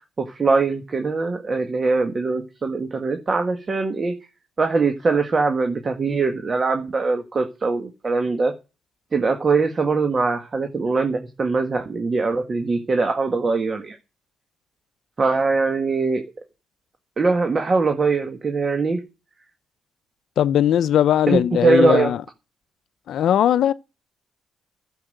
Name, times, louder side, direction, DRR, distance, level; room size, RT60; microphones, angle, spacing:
voice 1, 0.3-4.1 4.6-8.5 9.1-14.0 15.2-16.2 17.2-19.0 21.3-22.1, right 3 dB, 35° right, 1.7 m, -22 dB
voice 2, 20.4-22.2 23.1-23.7, left 10 dB, 70° left, 0.6 m, -19 dB
12.0 x 7.3 x 7.9 m
cardioid pair, 90°, 0 cm